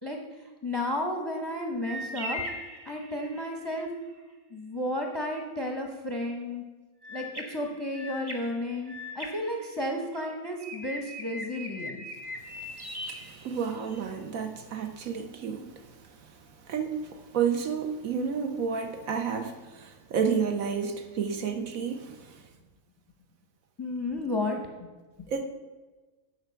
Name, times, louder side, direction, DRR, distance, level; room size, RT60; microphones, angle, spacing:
voice 1, 0.0-2.4 2.9-3.9 4.5-6.6 7.1-12.0 23.8-24.9 25.2-25.3, left 1 dB, 25° left, 2 dB, 0.6 m, -33 dB
sound 1, 1.8-3.5 7.0-10.2 10.6-14.0, left 1 dB, 20° right, 0.9 m, -40 dB
voice 2, 12.6-16.3 16.6-22.4 25.3-25.5, right 6 dB, 65° right, 6 dB, 1.2 m, -31 dB
9.0 x 4.8 x 6.7 m, 1.2 s
omnidirectional pair, 1.6 m